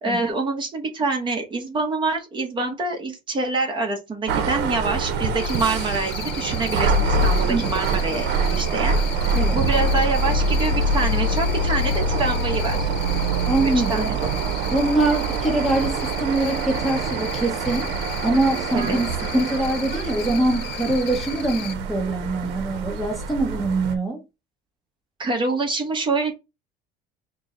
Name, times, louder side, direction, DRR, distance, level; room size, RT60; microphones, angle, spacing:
voice 1, 0.0-12.9 13.6-14.1 14.4-14.5 18.7-19.0 25.2-26.3, right 3 dB, 25° right, 1.0 m, -26 dB
sound 1, 4.3-24.0, right 3 dB, 70° right, 0.9 m, -25 dB
Cricket, 5.4-21.7, left 11 dB, 60° left, 0.7 m, -37 dB
voice 2, 13.5-14.1 14.7-17.9 18.2-24.2, right 2 dB, ahead, 0.9 m, -23 dB
4.6 x 2.2 x 3.8 m
cardioid pair, 145°, 19 cm